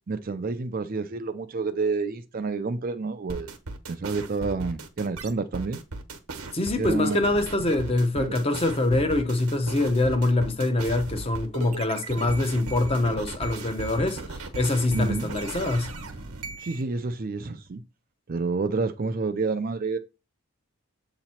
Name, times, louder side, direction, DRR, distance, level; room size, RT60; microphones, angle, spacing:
voice 1, 0.1-3.5 3.9-5.8 6.8-7.2 8.1-8.4 14.9-15.3 16.6-17.8 18.3-20.0, right 4 dB, 40° right, 0.4 m, -29 dB
sound 1, 3.3-16.8, right 3 dB, 75° right, 1.0 m, -37 dB
voice 2, 6.5-15.9, left 2 dB, 25° left, 0.8 m, -24 dB
7.7 x 2.9 x 4.3 m
head